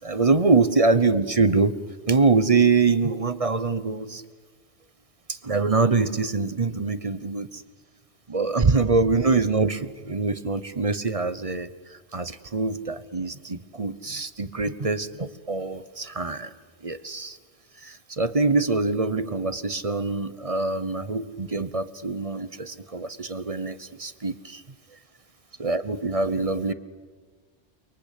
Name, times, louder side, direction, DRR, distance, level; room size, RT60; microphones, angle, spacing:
voice 1, 0.0-1.7 2.1-4.2 5.3-7.6 8.3-16.5 16.8-17.4 17.8-24.6 25.6-26.7, right 4 dB, 35° right, 13 dB, 1.0 m, -24 dB
30.0 x 22.5 x 8.5 m, 1.4 s
omnidirectional pair, 1.2 m